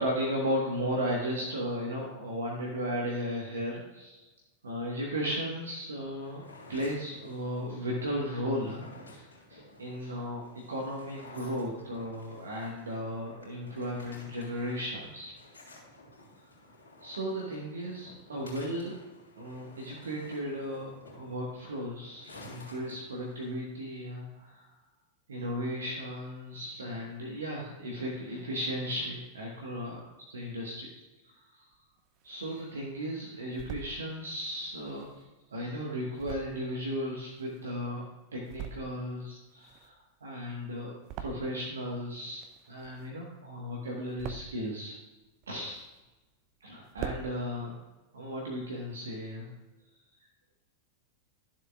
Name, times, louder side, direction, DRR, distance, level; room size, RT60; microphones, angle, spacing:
voice 1, 0.0-4.3 4.6-6.4 6.7-15.3 16.4-16.5 17.0-19.0 19.4-24.7 25.3-30.9 31.2-31.6 32.2-35.2 35.5-38.1 38.3-45.0 45.5-45.8 46.6-47.7 48.1-49.5, equal, 70° right, -2 dB, 1.4 m, -35 dB
sound 1, 6.2-23.6, left 2 dB, 70° left, 3.1 m, -53 dB
sound 2, 31.7-32.7 33.2-33.9 34.6-37.9 38.3-39.1 39.4-41.8 42.1-43.3 43.7-44.7 45.2-46.2 46.6-46.7 46.8-47.3, right 8 dB, 40° right, 0.6 m, -44 dB
12.5 x 7.3 x 2.4 m, 1.1 s
figure-of-eight pair, 90°, 0 cm